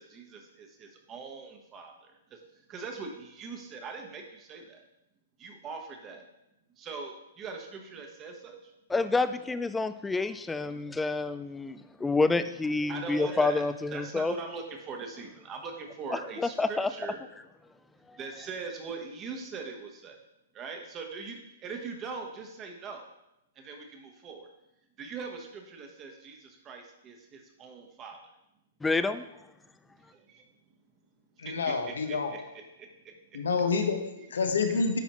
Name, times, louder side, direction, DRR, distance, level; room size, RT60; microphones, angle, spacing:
voice 1, 0.0-2.4 2.7-4.8 5.4-6.3 6.8-8.7 12.9-13.6 13.9-17.2 18.2-20.2 20.5-23.1 23.6-24.5 25.0-28.2 30.1-30.4 31.4-32.4 32.8-33.4 34.1-34.3 34.7-35.0, right 4 dB, 30° right, 3 dB, 1.2 m, -41 dB
voice 2, 8.9-14.4 16.1-16.9 18.1-18.2 28.8-29.2, left 3 dB, 10° left, 12 dB, 0.3 m, -28 dB
voice 3, 31.4-32.3 33.3-34.0 34.3-35.0, left 4 dB, 80° left, 6 dB, 0.9 m, -27 dB
10.0 x 4.2 x 3.1 m, 0.87 s
hypercardioid pair, 120°, 0 cm